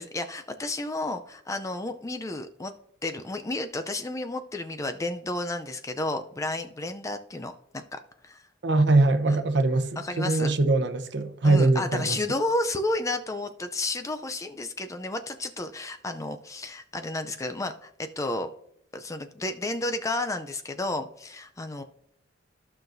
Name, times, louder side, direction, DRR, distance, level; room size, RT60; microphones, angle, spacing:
voice 1, 0.0-2.7 3.0-8.4 9.3-9.4 10.0-10.5 11.4-18.5 18.9-21.8, left 2 dB, 15° left, 0.4 m, -32 dB
voice 2, 8.6-12.2, right 2 dB, 60° right, 0.8 m, -22 dB
14.5 x 5.8 x 2.6 m
head